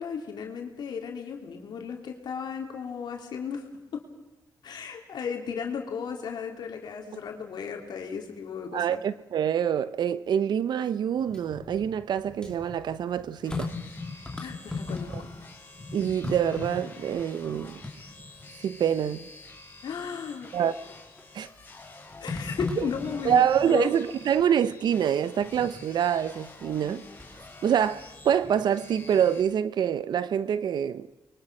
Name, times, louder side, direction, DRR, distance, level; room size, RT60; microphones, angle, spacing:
voice 1, 0.0-3.6 3.9-4.0 4.6-9.0 14.4-15.3 19.8-20.5 22.2-23.9, left 6 dB, 75° left, 3.2 m, -35 dB
voice 2, 8.7-13.7 15.1-15.2 15.9-17.8 18.6-19.3 20.5-20.8 21.3-21.5 22.8-22.9 23.2-27.0 27.6-31.1, right 9 dB, 80° right, 0.8 m, -26 dB
sound 1, 11.2-15.5 15.7-18.6 19.1-19.2 20.8-21.3 22.3-23.8 25.4-25.8 26.7-27.5 27.9-28.9 29.1-29.2, left 3 dB, 10° left, 3.1 m, -38 dB
sound 2, 13.4-29.4, left 3 dB, 30° left, 6.4 m, -49 dB
30.0 x 22.5 x 6.1 m
cardioid pair, 95°, 7 cm